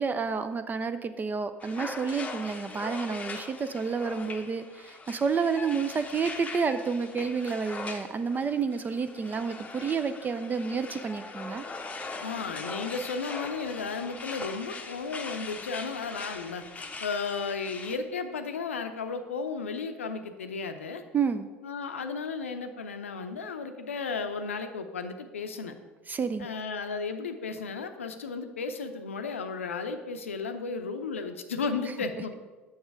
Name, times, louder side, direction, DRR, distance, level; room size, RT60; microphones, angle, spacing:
voice 1, 0.0-11.6 21.1-21.5 26.1-26.5, right 5 dB, 25° right, 10 dB, 0.4 m, -30 dB
sound 1, 1.6-18.0, left 3 dB, 20° left, 0.7 m, -41 dB
voice 2, 12.2-21.0 21.6-25.7 26.4-32.3, left 4 dB, 80° left, 8 dB, 0.6 m, -34 dB
7.2 x 6.1 x 4.6 m, 1.3 s
figure-of-eight pair, 70°, 7 cm